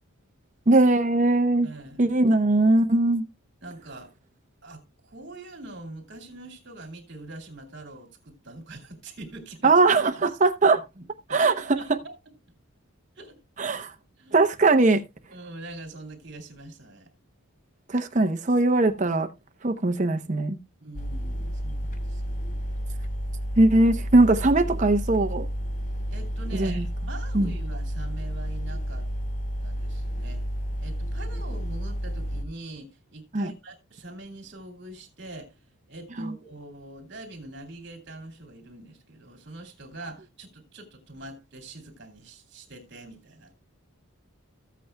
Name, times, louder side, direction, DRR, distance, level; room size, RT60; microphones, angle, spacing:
voice 1, 0.7-1.7 2.0-3.2 9.6-10.8 11.3-11.5 13.6-13.9 14.3-15.0 17.9-19.3 19.6-20.6 23.6-25.5 26.5-26.9 27.3-27.5 33.3-33.5 36.2-36.3, right 2 dB, 35° right, 0.7 m, -20 dB
voice 2, 1.6-2.2 3.6-4.1 4.6-9.7 10.9-12.1 12.5-12.6 13.2-13.4 14.2-14.4 15.3-17.1 20.8-22.4 26.1-29.1 29.6-30.4 30.8-35.6 35.9-43.5, right 2 dB, 50° right, 2.7 m, -43 dB
sound 1, 20.9-32.4, equal, 35° left, 0.8 m, -31 dB
15.0 x 8.4 x 2.2 m
head